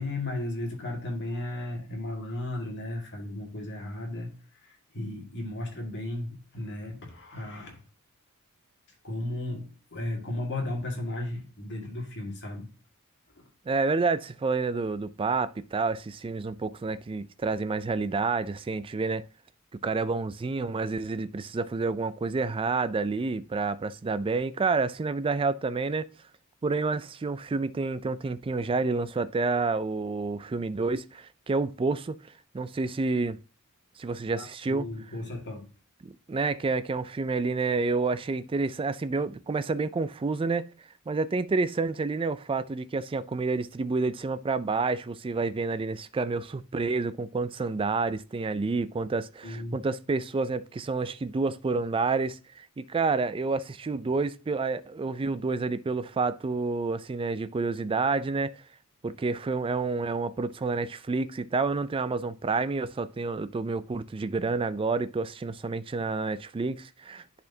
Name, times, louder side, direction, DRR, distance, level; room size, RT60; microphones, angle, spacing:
voice 1, 0.0-4.3 4.6-7.8 9.0-12.7 13.4-13.5 34.4-35.7 49.4-49.8, left 1 dB, 55° left, 2.0 m, -35 dB
voice 2, 13.7-19.2 19.8-26.1 26.6-32.2 32.5-33.4 34.0-34.9 36.0-40.7 41.1-58.6 59.0-67.2, right 4 dB, 25° right, 0.3 m, -29 dB
10.5 x 4.3 x 2.7 m
head